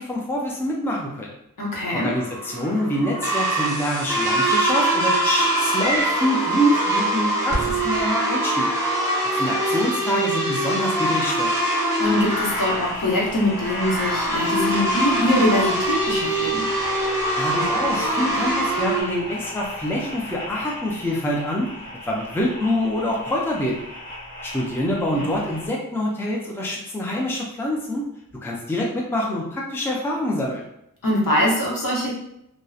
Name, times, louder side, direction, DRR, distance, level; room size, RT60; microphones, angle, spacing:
voice 1, 0.0-1.3 1.9-8.7 9.2-11.6 17.4-23.8 24.4-28.0 28.4-30.6, left 1 dB, 5° left, -2 dB, 0.4 m, -26 dB
voice 2, 1.6-2.1 12.0-16.7 25.1-25.4 31.0-32.1, left 1 dB, 65° left, -4 dB, 0.9 m, -23 dB
sound 1, 1.8-19.0, right 1 dB, 10° right, 1.0 m, -23 dB
sound 2, 12.0-25.7, left 1 dB, 25° left, 1.2 m, -36 dB
2.7 x 2.0 x 2.3 m, 0.79 s
wide cardioid pair, 80°, 35 cm